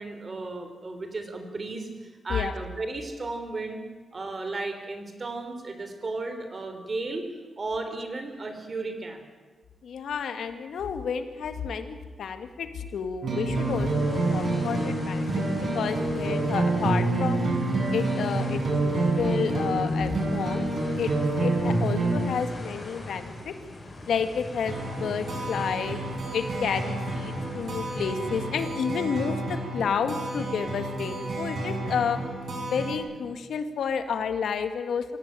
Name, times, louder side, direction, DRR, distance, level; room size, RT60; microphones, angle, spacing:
voice 1, 0.0-3.8 4.1-7.3 7.6-9.2, right 3 dB, 35° right, 7 dB, 3.6 m, -34 dB
voice 2, 9.8-15.3 15.7-17.5 17.9-20.7 21.0-21.1 21.4-23.5 24.1-26.0 26.3-32.2 32.7-35.1, left 6 dB, 85° left, 8 dB, 1.9 m, -30 dB
sound 1, 13.2-22.3 24.7-33.0, right 2 dB, 55° right, 7.5 m, -28 dB
sound 2, 13.5-28.5, left 2 dB, 30° left, 7.6 m, -42 dB
26.5 x 16.5 x 9.1 m, 1.4 s
wide cardioid pair, 135°, 0 cm